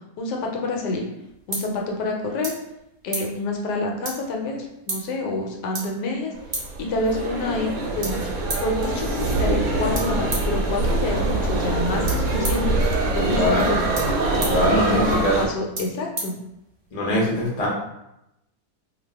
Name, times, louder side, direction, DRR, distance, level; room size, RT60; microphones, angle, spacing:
voice 1, 0.2-1.1 1.5-2.5 3.0-8.3 8.6-12.8 13.1-13.8 14.8-16.4, left 2 dB, 85° left, 1 dB, 1.2 m, -28 dB
sound 1, 0.8-17.0, right 2 dB, 45° right, 0.8 m, -37 dB
sound 2, 6.4-15.5, right 2 dB, 70° right, 0.9 m, -24 dB
voice 2, 13.2-13.8 14.4-15.3 16.9-17.7, left 1 dB, 40° left, -5 dB, 0.5 m, -22 dB
2.6 x 2.3 x 3.3 m, 0.86 s
omnidirectional pair, 1.8 m